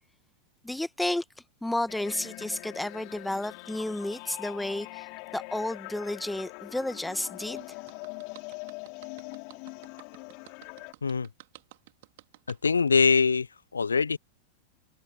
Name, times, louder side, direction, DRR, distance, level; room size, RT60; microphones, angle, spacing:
voice 1, 0.6-1.2 1.6-5.1 5.3-7.7, left 1 dB, 5° left, 1.8 m, -32 dB
sound 1, 1.9-10.9, left 38 dB, 45° left, 6.7 m, -43 dB
sound 2, 7.4-12.7, right 19 dB, 50° right, 3.6 m, -51 dB
voice 2, 12.5-13.5 13.7-14.2, left 5 dB, 75° left, 0.7 m, -23 dB
figure-of-eight pair, 90°, 0 cm